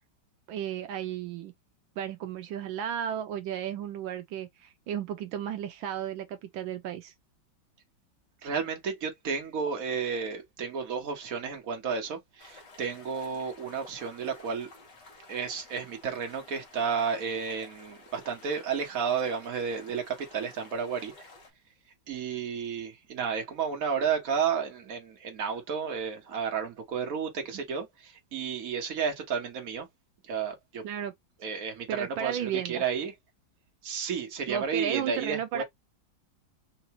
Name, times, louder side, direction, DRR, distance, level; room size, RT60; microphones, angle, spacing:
voice 1, 0.5-1.5 2.0-7.1 30.8-31.1 31.9-32.8 34.5-35.6, right 9 dB, 85° right, 1.4 m, -34 dB
voice 2, 8.4-14.7 15.3-21.3 22.1-29.9 30.3-30.8 31.4-33.1 33.8-35.6, right 6 dB, 50° right, 1.6 m, -32 dB
sound 1, 12.4-21.5, left 3 dB, 60° left, 2.0 m, -53 dB
4.6 x 2.6 x 2.9 m
omnidirectional pair, 2.1 m